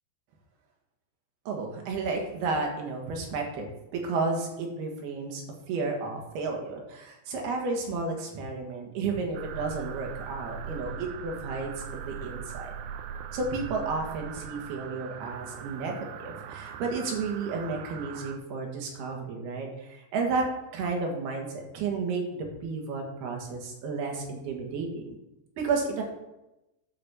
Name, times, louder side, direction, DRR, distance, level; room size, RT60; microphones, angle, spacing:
voice 1, 1.5-5.4 5.7-12.7 13.3-20.5 20.7-25.2 25.6-26.0, right 4 dB, 70° right, 1 dB, 3.6 m, -32 dB
sound 1, 9.3-18.4, right 7 dB, 85° right, 2.7 m, -40 dB
11.0 x 5.3 x 7.0 m, 0.94 s
omnidirectional pair, 4.9 m